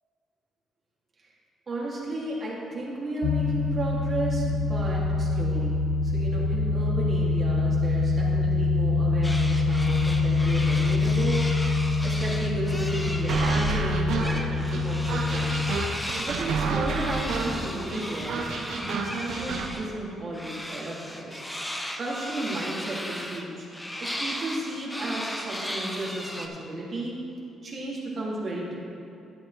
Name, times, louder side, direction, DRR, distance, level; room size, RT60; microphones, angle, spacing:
voice 1, 1.7-15.7 16.2-18.5 18.7-27.2 27.6-28.7, right 2 dB, 45° right, -5 dB, 2.5 m, -34 dB
sound 1, 3.2-15.8, left 3 dB, 70° left, 0.4 m, -25 dB
sound 2, 9.2-13.9 14.2-19.9 20.3-26.5, equal, 10° left, 0.9 m, -36 dB
sound 3, 13.3-19.7, right 4 dB, 75° right, 0.9 m, -30 dB
12.0 x 9.2 x 3.3 m, 2.7 s
cardioid pair, 90°, 0 cm